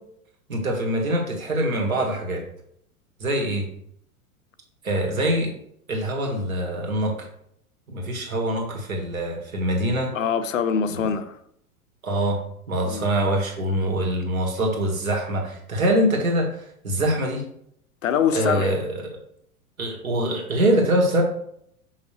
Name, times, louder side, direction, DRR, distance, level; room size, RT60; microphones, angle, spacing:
voice 1, 0.5-2.4 3.2-3.6 4.8-5.5 5.9-7.1 7.9-10.1 10.9-11.1 12.0-12.4 12.7-17.4 18.3-19.2 19.8-21.2, right 1 dB, 65° right, 2.1 m, -24 dB
voice 2, 10.1-11.4 12.8-13.1 18.0-18.8, left 7 dB, 60° left, 0.7 m, -24 dB
6.3 x 5.5 x 3.3 m
figure-of-eight pair, 95°, 44 cm